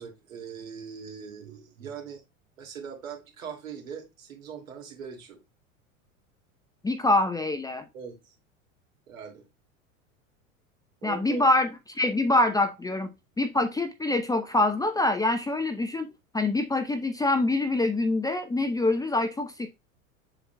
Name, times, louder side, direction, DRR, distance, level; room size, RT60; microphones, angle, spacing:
voice 1, 0.0-2.2 2.6-5.4 7.9-8.4 9.1-9.5 11.0-11.5, right 7 dB, 75° right, 2.5 m, -41 dB
voice 2, 6.8-7.8 11.0-11.7 12.0-13.1 13.4-16.1 16.3-19.7, left 2 dB, 10° left, 0.7 m, -25 dB
7.4 x 5.8 x 2.2 m
hypercardioid pair, 90°, 41 cm